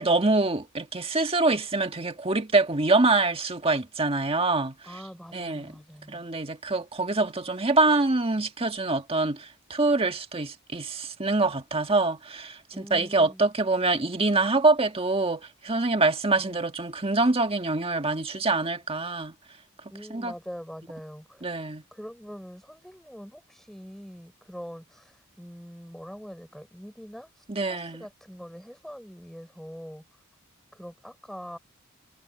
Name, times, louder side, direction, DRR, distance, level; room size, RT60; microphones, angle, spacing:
voice 1, 0.0-4.8 5.3-5.7 6.1-19.3 20.1-20.3 21.4-21.8 27.5-28.0, right 3 dB, 25° right, 1.6 m, -25 dB
voice 2, 4.8-6.3 12.7-13.4 16.4-16.6 19.9-21.5 21.9-30.1 30.7-31.6, equal, ahead, 6.5 m, -43 dB
head